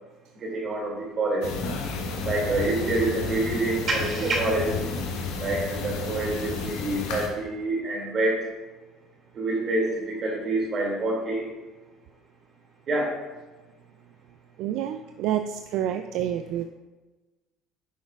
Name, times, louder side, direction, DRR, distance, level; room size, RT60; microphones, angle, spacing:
voice 1, 0.4-1.4 2.2-4.7 5.4-8.4 9.3-11.5 12.9-13.1, right 2 dB, 40° right, -2 dB, 2.4 m, -27 dB
sound 1, 1.4-7.3, left 4 dB, 80° left, 1.2 m, -32 dB
voice 2, 14.6-16.6, right 10 dB, 70° right, 8 dB, 0.3 m, -28 dB
9.1 x 6.3 x 2.4 m, 1.2 s
cardioid pair, 115°, 0 cm